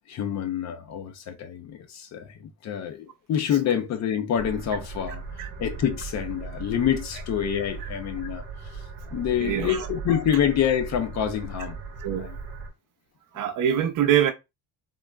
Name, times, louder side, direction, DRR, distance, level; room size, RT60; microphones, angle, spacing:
voice 1, 0.1-8.8 9.1-11.8 12.2-12.4, left 9 dB, 45° left, 0.5 m, -27 dB
sound 1, 4.3-12.7, right 4 dB, 30° right, 1.0 m, -38 dB
voice 2, 9.4-9.9 12.0-12.3 13.3-14.3, right 10 dB, 55° right, 0.6 m, -24 dB
3.7 x 2.0 x 2.2 m
cardioid pair, 130°, 40 cm